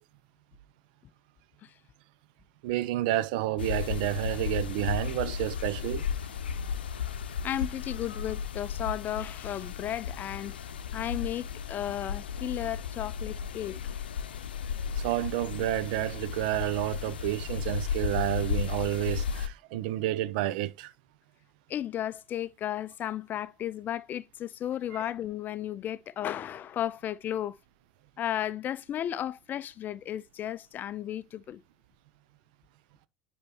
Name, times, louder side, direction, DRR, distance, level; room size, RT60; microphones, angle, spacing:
voice 1, 2.6-6.0 15.0-20.9, right 15 dB, 60° right, 0.7 m, -30 dB
sound 1, 3.6-19.5, left 7 dB, 75° left, 0.7 m, -34 dB
voice 2, 7.4-10.5 10.9-13.7 21.7-27.6 28.2-31.6, left 11 dB, 35° left, 0.4 m, -34 dB
9.5 x 4.3 x 3.0 m
figure-of-eight pair, 80°, 5 cm